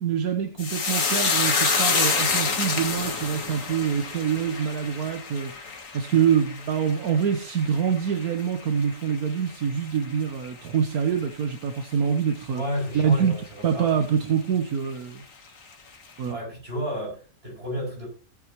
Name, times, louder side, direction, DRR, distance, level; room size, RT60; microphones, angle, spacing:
voice 1, 0.0-5.5 5.9-12.6 12.9-13.3 13.6-15.2 16.2-16.4, right 7 dB, 80° right, 1.5 m, -25 dB
sound 1, 0.6-9.2 9.5-10.2 10.4-10.7, left 5 dB, 60° left, 1.9 m, -27 dB
voice 2, 12.5-13.9 16.3-18.1, equal, 40° right, 7.4 m, -32 dB
18.0 x 8.9 x 3.0 m
omnidirectional pair, 1.6 m